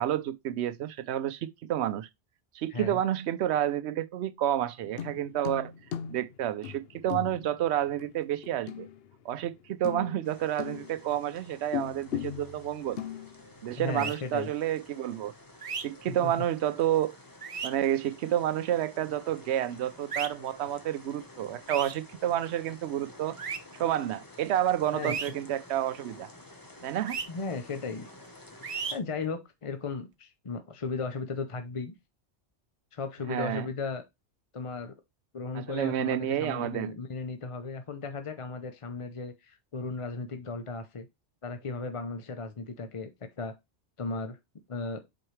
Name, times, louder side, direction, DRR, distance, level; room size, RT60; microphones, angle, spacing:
voice 1, 0.0-2.1 2.5-5.7 6.1-8.9 9.2-13.0 13.6-15.3 15.8-17.2 17.6-23.4 23.8-26.3 26.8-27.2 33.3-33.7 35.5-36.9, right 11 dB, 75° right, 0.8 m, -30 dB
sound 1, 4.8-9.5 9.8-11.2 11.7-13.8 14.1-14.2, left 10 dB, 65° left, 0.8 m, -39 dB
sound 2, 10.2-29.0, left 1 dB, 20° left, 0.9 m, -51 dB
voice 2, 13.8-14.5 16.1-16.3 24.9-25.1 27.3-28.1 28.9-31.9 32.9-34.0 34.5-34.9 35.3-41.1 41.4-43.1 43.4-43.5 44.0-44.4 44.7-45.0, left 4 dB, 40° left, 0.5 m, -36 dB
sound 3, 14.0-14.2 15.6-15.8 17.4-17.7 20.1-20.3 21.7-21.9 23.4-23.6 25.0-25.3 27.1-27.2 28.6-28.9, right 6 dB, 40° right, 0.5 m, -34 dB
7.7 x 4.3 x 3.2 m
omnidirectional pair, 1.1 m